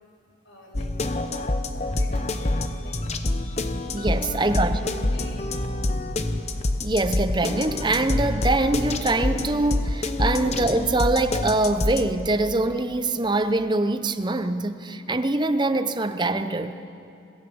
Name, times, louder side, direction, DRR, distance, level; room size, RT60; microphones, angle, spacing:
voice 1, 0.4-3.0 4.3-5.5 10.4-10.5, left 2 dB, 85° left, 5.2 m, -46 dB
sound 1, 0.7-12.1, left 2 dB, 35° left, 0.9 m, -27 dB
voice 2, 3.9-4.8 6.8-16.9, right 2 dB, 20° right, 0.8 m, -24 dB
26.5 x 18.0 x 7.1 m
head